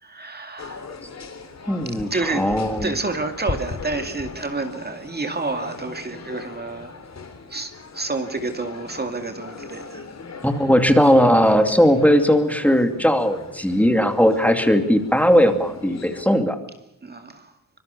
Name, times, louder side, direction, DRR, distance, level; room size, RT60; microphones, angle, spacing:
voice 1, 0.0-0.8 2.1-2.5 2.8-7.0 7.5-10.1 11.0-11.2 17.0-17.5, right 3 dB, 30° right, 2.2 m, -29 dB
sound 1, 0.6-16.2, left 4 dB, 50° left, 3.5 m, -38 dB
voice 2, 1.7-2.9 10.4-16.6, equal, 5° left, 2.5 m, -18 dB
25.0 x 23.0 x 6.9 m
cardioid pair, 105°, 33 cm